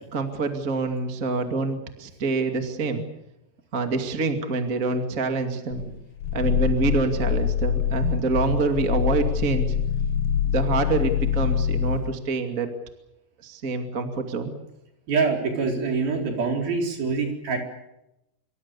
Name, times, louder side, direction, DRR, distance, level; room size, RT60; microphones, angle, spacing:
voice 1, 0.1-3.0 3.7-5.8 6.3-9.7 10.4-12.7 13.4-14.5, right 3 dB, 25° right, 5 dB, 2.0 m, -26 dB
Growling, 5.7-12.1, left 9 dB, 70° left, 2.4 m, -25 dB
voice 2, 15.1-17.6, right 4 dB, 60° right, 2 dB, 6.1 m, -25 dB
26.0 x 24.5 x 7.0 m, 0.89 s
omnidirectional pair, 4.9 m